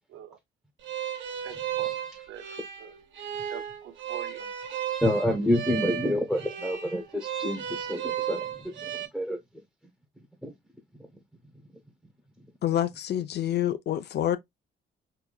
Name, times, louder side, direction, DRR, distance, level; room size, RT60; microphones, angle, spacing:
sound 1, 0.8-9.1, right 10 dB, 70° right, 0.9 m, -34 dB
voice 1, 1.4-2.0 2.3-2.4 2.8-2.9 3.5-4.5, right 10 dB, 90° right, 0.5 m, -44 dB
voice 2, 5.0-9.4 10.4-10.5, left 1 dB, ahead, 0.8 m, -28 dB
voice 3, 12.6-14.4, left 11 dB, 55° left, 0.5 m, -27 dB
3.8 x 2.6 x 2.2 m
cardioid pair, 90°, 20 cm